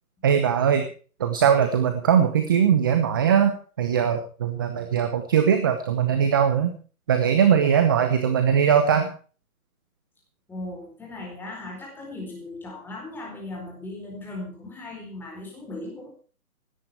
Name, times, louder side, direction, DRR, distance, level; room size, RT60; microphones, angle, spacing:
voice 1, 0.2-0.9 1.2-6.7 7.1-9.1, right 8 dB, 15° right, 8 dB, 0.8 m, -20 dB
voice 2, 10.5-16.1, left 2 dB, 5° left, 0 dB, 4.2 m, -37 dB
17.0 x 12.5 x 4.4 m, 0.39 s
hypercardioid pair, 160°, 44 cm